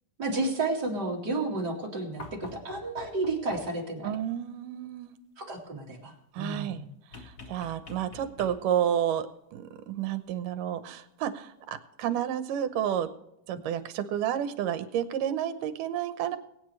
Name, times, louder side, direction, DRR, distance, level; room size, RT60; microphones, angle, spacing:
voice 1, 0.2-4.2 5.4-6.9, right 2 dB, 35° right, -1 dB, 2.6 m, -32 dB
sound 1, 2.2-3.9 7.1-8.9 10.4-10.5, left 2 dB, 45° left, 1.1 m, -46 dB
voice 2, 4.0-5.2 6.3-6.8 7.2-13.1 13.5-16.4, right 10 dB, 80° right, 11 dB, 2.5 m, -31 dB
22.5 x 9.2 x 3.2 m, 0.83 s
omnidirectional pair, 3.7 m